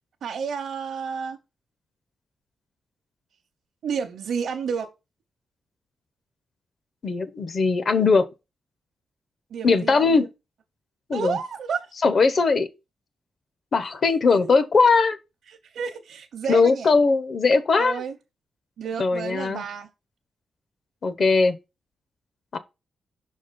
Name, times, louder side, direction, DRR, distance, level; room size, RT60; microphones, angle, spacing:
voice 1, 0.2-1.4 3.8-4.9 9.5-10.3 11.1-11.9 13.8-14.0 14.3-14.6 15.5-16.9 17.8-18.1 18.8-19.9, right 6 dB, 70° right, 0.8 m, -31 dB
voice 2, 7.0-8.3 9.6-10.3 11.1-11.4 12.0-12.7 13.7-15.2 16.5-18.0 19.0-19.6 21.0-21.6 22.5-22.6, left 4 dB, 45° left, 0.8 m, -20 dB
5.9 x 4.2 x 5.1 m
wide cardioid pair, 135°, 0 cm